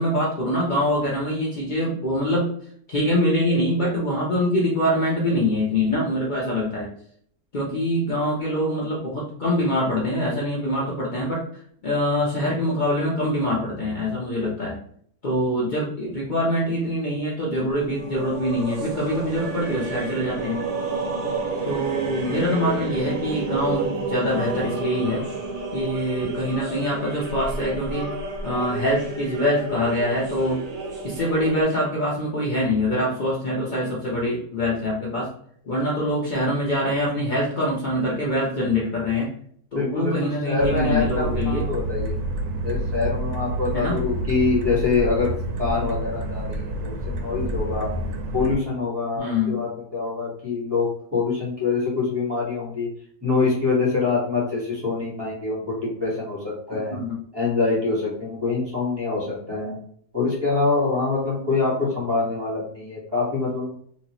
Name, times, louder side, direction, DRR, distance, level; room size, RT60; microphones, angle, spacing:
voice 1, 0.0-2.5 2.9-6.9 7.5-11.4 11.8-14.8 15.2-20.6 21.6-25.2 25.7-28.1 28.4-30.6 31.0-35.3 35.7-39.3 39.7-41.7 43.7-44.0 49.2-49.6 56.9-57.1, left 1 dB, 80° left, -5 dB, 0.4 m, -24 dB
sound 1, 17.7-31.6, right 3 dB, 60° right, 1.3 m, -31 dB
voice 2, 39.7-42.2 42.6-45.3 45.6-47.9 48.3-52.9 53.2-57.0 57.3-59.8 60.1-63.7, left 4 dB, 15° right, -6 dB, 1.2 m, -25 dB
sound 2, 40.6-48.6, right 1 dB, 80° right, 1.2 m, -28 dB
3.0 x 2.8 x 2.9 m, 0.62 s
omnidirectional pair, 1.9 m